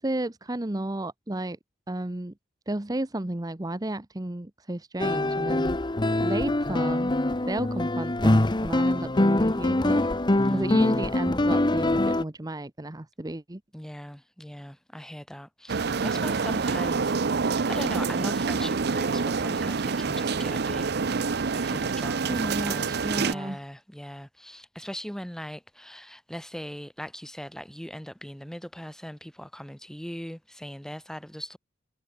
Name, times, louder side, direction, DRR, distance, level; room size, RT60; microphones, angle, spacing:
voice 1, 0.0-1.6 1.9-2.3 2.7-5.8 6.2-7.2 7.5-10.1 10.5-13.6 22.3-23.6, right 1 dB, 20° right, 0.9 m, -32 dB
sound 1, 5.0-12.2, left 1 dB, 25° left, 0.9 m, -24 dB
voice 2, 10.4-11.1 13.7-20.9 21.5-31.6, equal, 5° left, 1.6 m, -40 dB
sound 2, 15.7-23.3, right 4 dB, 60° right, 0.6 m, -27 dB
head